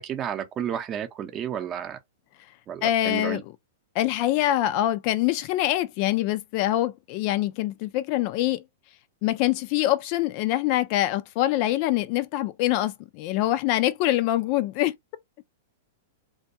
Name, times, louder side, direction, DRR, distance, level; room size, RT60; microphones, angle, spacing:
voice 1, 0.0-2.0 2.7-3.4, right 9 dB, 30° right, 0.6 m, -32 dB
voice 2, 2.8-3.5 4.0-8.6 9.2-14.9, left 14 dB, 50° left, 0.3 m, -24 dB
2.2 x 2.2 x 2.7 m
hypercardioid pair, 120°, 0 cm